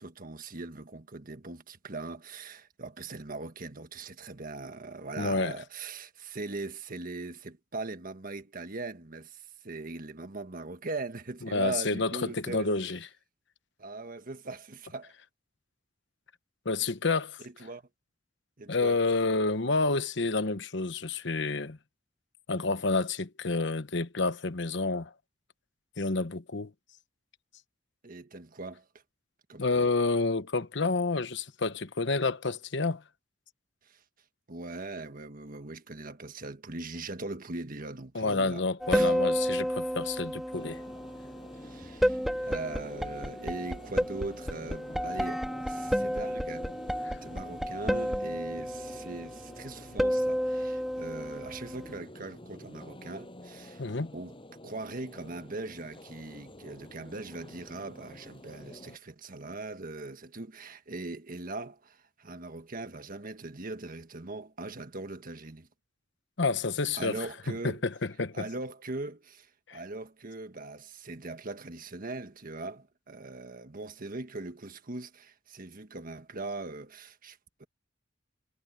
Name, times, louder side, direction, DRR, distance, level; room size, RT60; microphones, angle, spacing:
voice 1, 0.0-12.9 13.8-15.1 17.4-17.8 18.6-19.0 28.0-28.9 29.5-29.9 33.8-34.0 34.5-38.6 38.9-39.2 41.6-46.7 47.2-53.8 54.1-54.4 54.6-65.7 67.0-67.8 68.3-77.7, right 3 dB, 50° right, 1.5 m, -40 dB
voice 2, 5.2-5.5 11.5-13.0 16.6-17.4 18.7-21.8 22.5-25.1 26.0-26.7 29.6-33.0 38.1-40.8 47.1-47.2 53.8-54.1 66.4-67.2 67.6-67.9 68.2-68.4 69.7-69.8, left 3 dB, 70° left, 1.1 m, -29 dB
sound 1, 38.8-52.0, equal, ahead, 2.3 m, -31 dB
sound 2, 40.5-59.0, left 1 dB, 30° left, 7.4 m, -49 dB
head